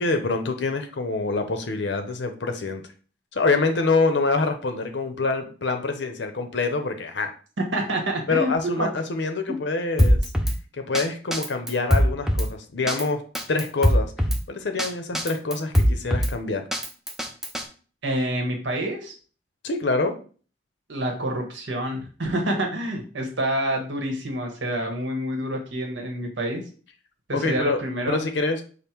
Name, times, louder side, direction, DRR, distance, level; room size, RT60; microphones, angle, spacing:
voice 1, 0.0-2.8 3.3-7.3 8.3-10.2 10.8-13.2 13.5-14.1 14.5-16.6 19.6-20.1 27.3-27.8 28.1-28.6, left 3 dB, 65° left, 6 dB, 0.6 m, -25 dB
voice 2, 7.7-8.9 18.0-19.1 20.9-26.6 27.3-28.2, right 1 dB, 70° right, 2 dB, 1.1 m, -27 dB
Drum kit, 10.0-10.6 10.9-11.0 11.3-12.5 12.9-13.0 13.3-14.4 14.8-14.9 15.1-16.3 16.7-17.6, equal, ahead, 0.5 m, -21 dB
5.3 x 2.1 x 4.4 m, 0.40 s
head